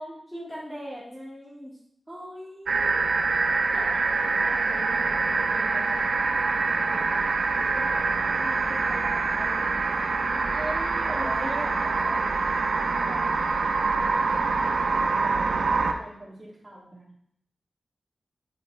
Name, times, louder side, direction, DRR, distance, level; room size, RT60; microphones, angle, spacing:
voice 1, 0.3-1.8 6.7-6.8 8.3-9.8 11.1-12.5 13.0-14.2, equal, 10° left, -5 dB, 1.6 m, -40 dB
voice 2, 2.1-3.1 3.7-6.3 6.9-7.3 7.5-8.1 10.4-11.5 14.6-17.1, right 1 dB, 20° right, -5 dB, 2.5 m, -42 dB
sound 1, 2.7-15.9, right 4 dB, 85° right, 0.5 m, -25 dB
8.1 x 4.4 x 3.3 m, 0.69 s
wide cardioid pair, 100°, 0 cm